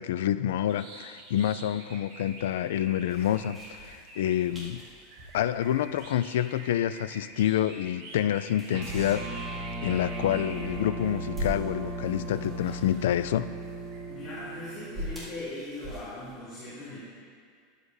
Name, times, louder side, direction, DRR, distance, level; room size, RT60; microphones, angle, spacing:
voice 1, 0.0-4.8 5.3-13.5, left 11 dB, 85° left, 13 dB, 0.3 m, -28 dB
sound 1, 0.7-14.8, right 1 dB, 60° right, 2.2 m, -48 dB
sound 2, 3.1-16.3, equal, 10° right, 2.1 m, -44 dB
sound 3, 8.7-15.1, right 2 dB, 35° right, 0.9 m, -37 dB
voice 2, 14.1-17.0, left 2 dB, 15° left, -13 dB, 2.8 m, -39 dB
13.0 x 11.5 x 2.7 m, 2.1 s
supercardioid pair, 175°, 0 cm